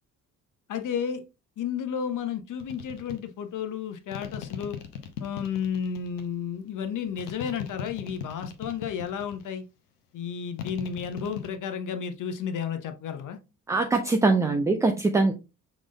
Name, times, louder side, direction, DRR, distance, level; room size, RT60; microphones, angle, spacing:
voice 1, 0.7-1.2 1.6-4.8 5.2-9.6 10.1-13.4, left 7 dB, 40° left, 0.9 m, -32 dB
sound 1, 2.6-3.2 4.1-6.3 7.2-9.5 10.6-11.6, left 8 dB, 80° left, 0.7 m, -38 dB
voice 2, 13.7-15.3, right 3 dB, 10° right, 0.3 m, -22 dB
6.1 x 3.8 x 2.3 m
figure-of-eight pair, 45°, 47 cm